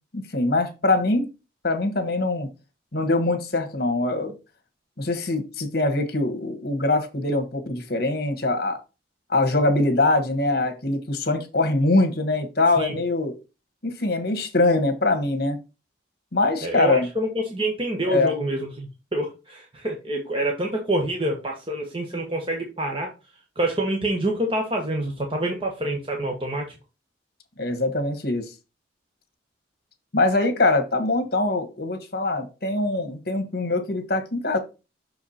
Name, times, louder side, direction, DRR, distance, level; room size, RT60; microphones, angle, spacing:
voice 1, 0.1-1.2 1.6-2.5 2.9-4.3 5.0-8.8 9.3-13.3 13.8-15.6 16.3-17.1 18.1-18.3 27.6-28.4 30.1-34.6, left 2 dB, 55° left, 1.4 m, -23 dB
voice 2, 16.6-23.1 23.6-26.7, right 1 dB, 30° right, 1.1 m, -27 dB
6.4 x 4.8 x 4.3 m
head